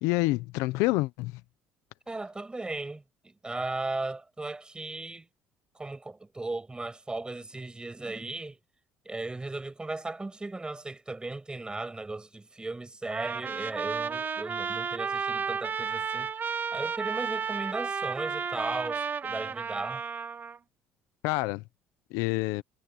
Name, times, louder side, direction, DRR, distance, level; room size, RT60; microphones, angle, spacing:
voice 1, 0.0-1.4 21.2-21.6 22.1-22.6, left 21 dB, 80° left, 0.8 m, -27 dB
voice 2, 2.1-5.3 5.8-8.6 9.0-16.3 16.7-20.0, right 2 dB, 15° right, 7.5 m, -36 dB
Trumpet, 13.1-20.6, right 6 dB, 40° right, 2.1 m, -32 dB
supercardioid pair, 80°, 5 cm